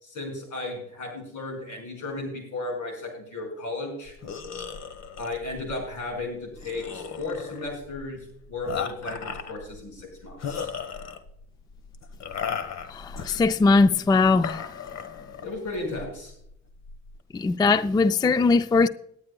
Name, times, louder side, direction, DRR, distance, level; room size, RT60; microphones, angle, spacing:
voice 1, 0.0-4.1 5.2-8.2 8.5-10.7 15.4-16.3, left 2 dB, 80° left, 5.4 m, -34 dB
sound 1, 4.1-17.2, left 6 dB, 60° left, 1.3 m, -37 dB
voice 2, 12.9-14.7 17.3-18.9, left 4 dB, 15° left, 0.3 m, -20 dB
20.5 x 9.7 x 2.3 m
cardioid pair, 90°, 30 cm